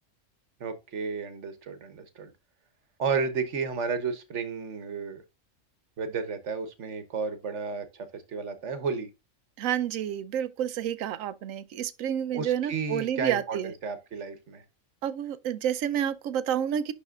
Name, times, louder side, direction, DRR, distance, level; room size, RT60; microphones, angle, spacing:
voice 1, 0.6-2.3 3.0-5.2 6.0-9.1 12.3-14.6, right 5 dB, 65° right, 1.4 m, -32 dB
voice 2, 9.6-13.7 15.0-16.9, right 9 dB, 90° right, 1.0 m, -29 dB
11.0 x 4.0 x 2.4 m
omnidirectional pair, 1.4 m